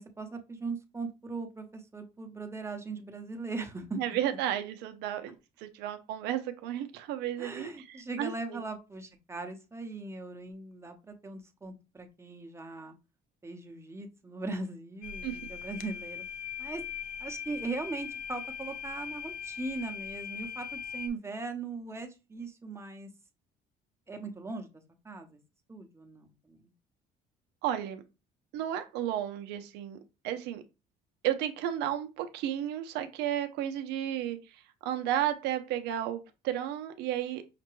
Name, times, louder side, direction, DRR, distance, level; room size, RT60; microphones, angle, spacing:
voice 1, 0.0-4.0 7.4-12.9 13.4-16.2 16.6-16.8 17.2-23.1 24.1-24.7 25.0-25.4 25.7-26.6, right 3 dB, 15° right, 5 dB, 0.8 m, -39 dB
voice 2, 4.0-8.6 15.2-15.4 27.6-28.0 28.5-30.0 30.2-30.6 31.2-37.6, right 11 dB, 90° right, 8 dB, 0.5 m, -33 dB
sound 1, 15.0-21.1, left 8 dB, 60° left, 0.6 m, -40 dB
5.8 x 2.2 x 3.0 m, 0.28 s
cardioid pair, 110°, 17 cm